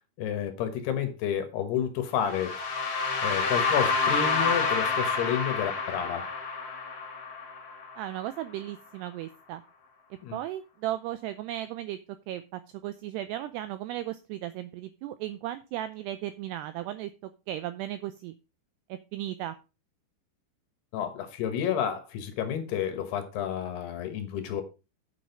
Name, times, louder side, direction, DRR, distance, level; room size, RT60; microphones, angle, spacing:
voice 1, 0.2-2.6 3.2-6.3 10.2-10.4 20.9-24.6, left 9 dB, 70° left, 2.9 m, -30 dB
sound 1, 2.2-8.2, left 4 dB, 40° left, 2.3 m, -28 dB
voice 2, 8.0-9.6 10.3-12.0 12.3-17.1 17.5-18.3 18.9-19.6, right 13 dB, 90° right, 2.3 m, -35 dB
8.9 x 6.3 x 5.2 m
omnidirectional pair, 5.4 m